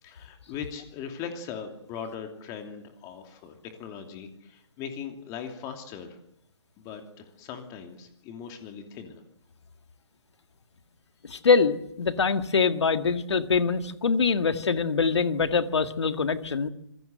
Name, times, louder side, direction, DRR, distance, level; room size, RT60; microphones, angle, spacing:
voice 1, 0.0-6.2 6.8-9.2, left 7 dB, 25° left, 5 dB, 2.8 m, -40 dB
voice 2, 11.2-16.7, left 5 dB, 70° left, 9 dB, 2.0 m, -24 dB
26.0 x 21.0 x 7.9 m, 0.77 s
figure-of-eight pair, 140°, 15 cm